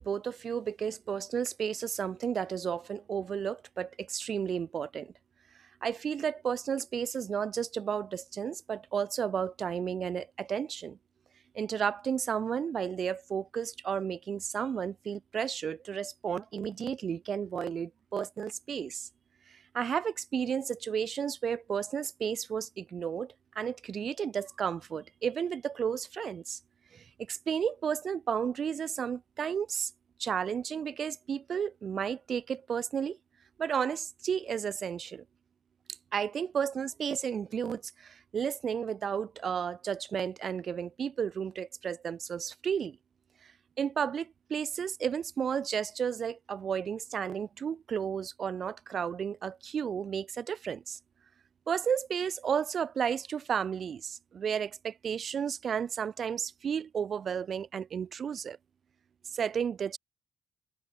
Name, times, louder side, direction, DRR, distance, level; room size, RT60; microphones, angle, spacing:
voice 1, 0.0-5.1 5.8-11.0 11.5-19.1 19.7-26.6 26.9-29.9 30.2-33.2 33.6-35.2 36.1-43.0 43.8-51.0 51.7-58.6 59.3-60.0, right 7 dB, 45° right, 0.6 m, -33 dB
cardioid pair, 145°, 0 cm